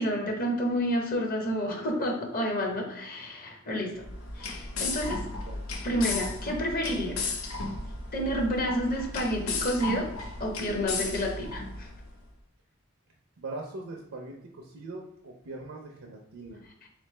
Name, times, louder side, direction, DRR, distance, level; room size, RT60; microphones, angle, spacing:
voice 1, 0.0-4.0 4.4-5.3 5.8-7.3 8.1-10.1 10.4-11.9 16.8-16.9, equal, 45° left, 1 dB, 0.9 m, -30 dB
sound 1, 4.0-12.1, left 3 dB, 85° left, 0.7 m, -35 dB
voice 2, 13.4-16.6, right 2 dB, 85° right, 1 dB, 0.6 m, -41 dB
3.6 x 3.1 x 3.2 m, 0.77 s
head